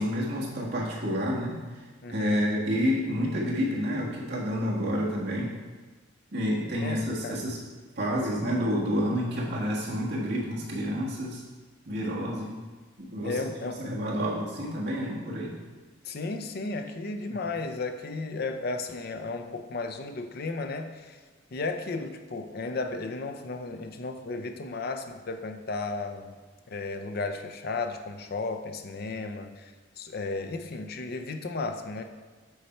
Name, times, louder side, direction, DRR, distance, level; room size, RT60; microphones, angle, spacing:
voice 1, 0.0-5.5 6.3-7.6 8.0-11.4 11.8-12.6 13.0-13.4 13.8-15.6 17.3-17.4, equal, 60° right, -4 dB, 1.5 m, -29 dB
voice 2, 2.0-2.4 6.8-7.4 13.2-13.8 16.0-21.2 21.5-26.3 26.7-32.0, left 3 dB, 50° left, 7 dB, 0.5 m, -34 dB
8.0 x 4.3 x 4.3 m, 1.4 s
head